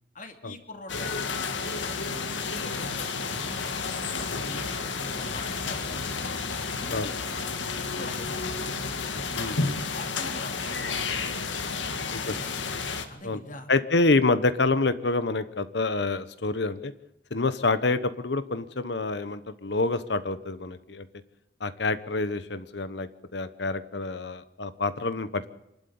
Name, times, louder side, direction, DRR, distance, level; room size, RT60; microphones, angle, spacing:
voice 1, 0.1-2.5 2.8-6.2 6.8-8.9 9.9-12.5 13.1-13.7, left 2 dB, 45° left, 5 dB, 2.6 m, -44 dB
sound 1, 0.9-13.1, left 4 dB, 85° left, 2.0 m, -31 dB
voice 2, 9.3-9.8 12.1-12.4 13.2-13.4 13.7-16.9 17.3-21.1 21.6-25.5, left 3 dB, 65° left, 13 dB, 1.1 m, -27 dB
27.0 x 12.0 x 8.6 m, 0.84 s
head